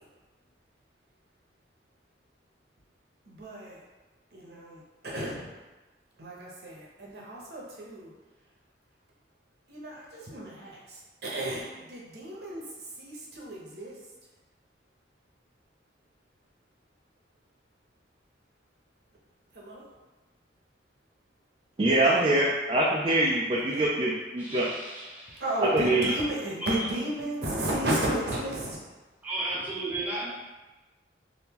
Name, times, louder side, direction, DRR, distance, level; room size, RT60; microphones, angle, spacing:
voice 1, 3.3-3.8 4.3-5.5 6.2-8.1 9.7-12.6 13.0-13.9 19.6-19.8 21.8-21.9 23.7-23.8 25.4-28.8, right 1 dB, 60° right, -3 dB, 0.8 m, -33 dB
voice 2, 21.8-24.7 25.7-26.1, right 1 dB, 25° right, -5 dB, 0.3 m, -24 dB
voice 3, 24.4-25.4 25.8-26.2 26.6-26.9 29.2-30.3, right 2 dB, 10° right, -8 dB, 0.7 m, -34 dB
3.5 x 2.6 x 2.9 m, 1.2 s
head